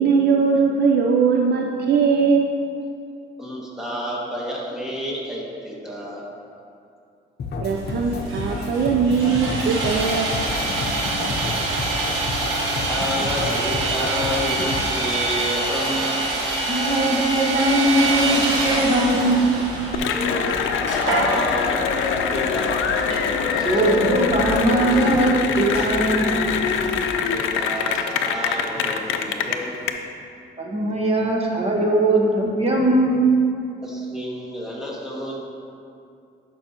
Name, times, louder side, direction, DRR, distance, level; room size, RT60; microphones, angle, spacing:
voice 1, 0.0-2.5 7.6-10.3, right 5 dB, 55° right, 1 dB, 0.5 m, -20 dB
voice 2, 3.4-6.2 11.3-11.9 12.8-16.3 20.1-23.1 23.5-23.8 27.1-29.9 33.8-35.4, equal, 5° right, -5 dB, 1.9 m, -30 dB
sound 1, 7.4-15.2, left 3 dB, 55° left, 0.8 m, -31 dB
Sawing, 7.7-27.1, right 2 dB, 90° right, 1.3 m, -27 dB
voice 3, 16.7-19.4 23.6-26.4 30.6-33.2, right 1 dB, 30° right, -2 dB, 1.3 m, -20 dB
Cheering / Applause, 19.9-29.9, left 7 dB, 80° left, 0.5 m, -24 dB
11.5 x 5.5 x 2.9 m, 2.5 s
cardioid pair, 90°, 20 cm